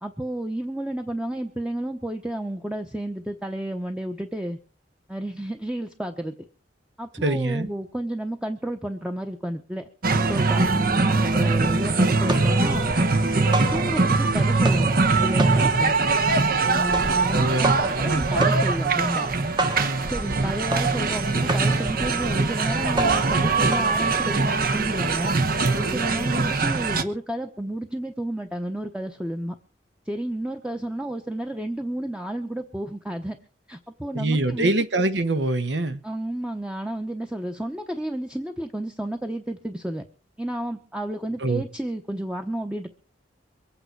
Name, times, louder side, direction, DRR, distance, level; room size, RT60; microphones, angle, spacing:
voice 1, 0.0-4.6 5.1-6.3 7.0-12.9 13.4-15.9 16.6-19.3 20.1-25.3 25.7-29.6 30.1-33.4 33.7-34.7 36.0-40.0 40.4-42.9, right 1 dB, 5° right, 0.9 m, -31 dB
voice 2, 7.2-7.7 17.0-18.3 19.8-20.1 34.1-36.0 41.4-41.6, right 2 dB, 70° right, 1.3 m, -25 dB
sound 1, 10.0-27.0, right 3 dB, 55° right, 1.1 m, -22 dB
sound 2, 12.2-14.3 14.5-24.7, right 2 dB, 25° right, 1.2 m, -29 dB
23.5 x 8.9 x 4.7 m
head